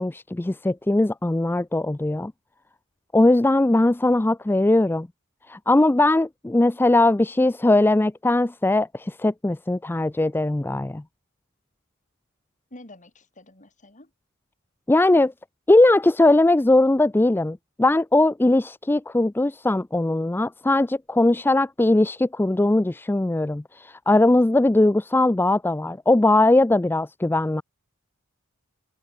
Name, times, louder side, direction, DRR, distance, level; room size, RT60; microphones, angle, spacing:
voice 1, 0.0-2.3 3.1-5.1 5.5-11.0 14.9-15.3 15.7-27.6, left 2 dB, 10° left, 0.4 m, -20 dB
voice 2, 12.7-14.1, left 1 dB, 35° left, 6.9 m, -47 dB
head